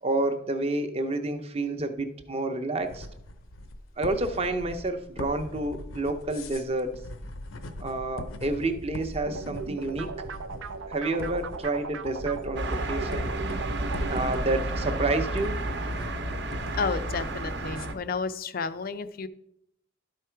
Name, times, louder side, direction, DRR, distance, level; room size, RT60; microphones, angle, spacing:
voice 1, 0.0-3.1 4.0-7.0 7.8-10.1 10.9-13.3 14.1-15.6, right 2 dB, 30° right, 7 dB, 0.7 m, -29 dB
sound 1, 2.8-17.9, left 1 dB, 85° left, 0.8 m, -41 dB
sound 2, 9.3-14.4, right 4 dB, 80° right, 0.5 m, -37 dB
sound 3, 12.6-17.9, right 1 dB, 60° right, 0.9 m, -31 dB
voice 2, 16.7-19.3, left 5 dB, 45° left, 12 dB, 0.4 m, -31 dB
12.0 x 4.8 x 4.5 m, 0.77 s
head